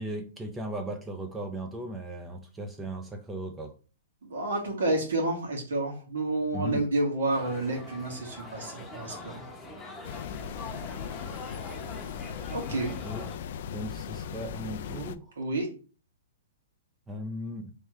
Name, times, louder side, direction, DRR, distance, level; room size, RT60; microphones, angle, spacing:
voice 1, 0.0-3.7 6.5-6.9 12.7-13.3 13.7-15.3 17.1-17.7, right 1 dB, 10° right, 5 dB, 0.5 m, -37 dB
voice 2, 4.2-9.4 12.5-13.0 15.4-15.7, right 2 dB, 85° right, -1 dB, 2.0 m, -30 dB
sound 1, 7.3-13.4, left 2 dB, 10° left, 0.8 m, -43 dB
sound 2, 10.0-15.1, left 8 dB, 55° left, 0.3 m, -38 dB
3.4 x 3.2 x 3.1 m, 0.37 s
hypercardioid pair, 145°, 0 cm